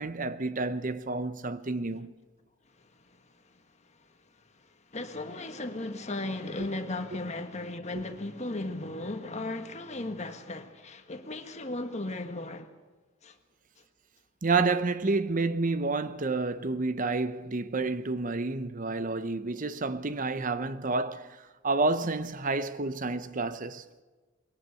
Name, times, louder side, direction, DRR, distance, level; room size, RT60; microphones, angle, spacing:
voice 1, 0.0-2.1 14.4-23.8, right 3 dB, 40° right, 0.9 m, -29 dB
voice 2, 4.9-12.7 13.2-13.3, left 2 dB, 35° left, 1.6 m, -36 dB
21.5 x 18.5 x 8.4 m
head